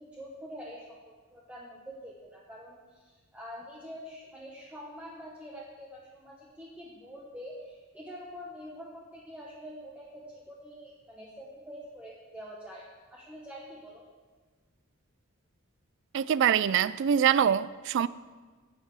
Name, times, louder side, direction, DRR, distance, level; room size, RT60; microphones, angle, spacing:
voice 1, 0.0-14.0, equal, 5° right, -5 dB, 1.1 m, -46 dB
voice 2, 16.1-18.1, right 8 dB, 55° right, 17 dB, 0.3 m, -24 dB
16.5 x 6.5 x 4.8 m, 1.4 s
head